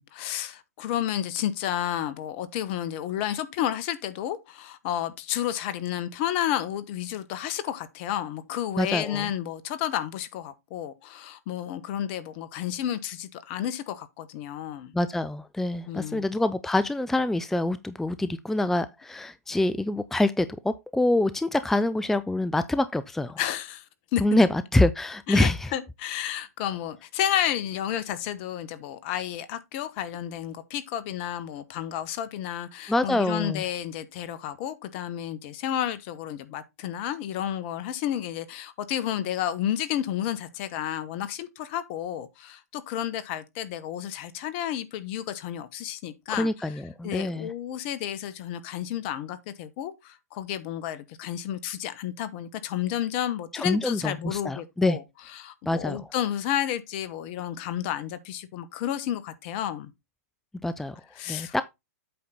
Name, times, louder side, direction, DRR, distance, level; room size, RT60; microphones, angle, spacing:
voice 1, 0.0-14.9 15.9-16.2 23.4-23.8 24.1-24.4 25.3-46.7 47.0-55.0 55.3-59.9 61.1-61.6, left 11 dB, 45° left, 1.3 m, -31 dB
voice 2, 8.8-9.3 14.9-23.4 24.2-25.7 32.9-33.6 46.3-47.5 53.5-55.0 55.7-56.1 60.6-61.0 61.3-61.6, left 2 dB, 5° left, 0.5 m, -25 dB
8.5 x 5.8 x 3.9 m
hypercardioid pair, 120°, 9 cm